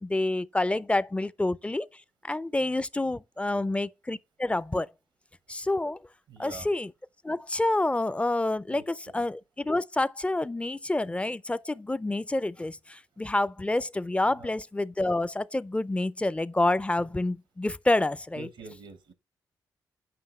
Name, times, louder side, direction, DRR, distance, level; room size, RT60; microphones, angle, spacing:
voice 1, 0.0-1.9 2.2-4.9 5.5-6.0 6.4-6.9 7.2-18.5, left 2 dB, 15° left, 0.4 m, -28 dB
voice 2, 6.3-6.7 8.7-9.2 14.4-14.5 18.4-19.1, right 4 dB, 90° right, 1.0 m, -46 dB
7.7 x 5.5 x 3.1 m
supercardioid pair, 50°, 8 cm